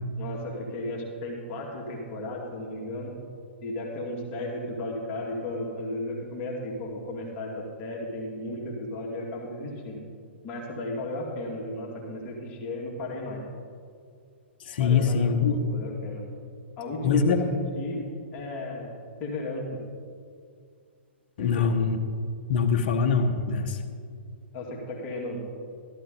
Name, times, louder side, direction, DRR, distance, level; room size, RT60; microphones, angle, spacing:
voice 1, 0.2-3.1 3.6-10.0 10.4-13.4 14.8-16.2 16.8-17.4 17.8-18.1 18.3-18.9 19.2-19.8 21.4-21.8 24.5-25.5, left 1 dB, 30° left, -3 dB, 2.4 m, -34 dB
voice 2, 14.7-15.7 17.0-17.4 21.4-22.0 22.5-23.8, left 5 dB, 45° left, 5 dB, 1.3 m, -23 dB
14.0 x 13.0 x 3.9 m, 2.2 s
figure-of-eight pair, 110°, 6 cm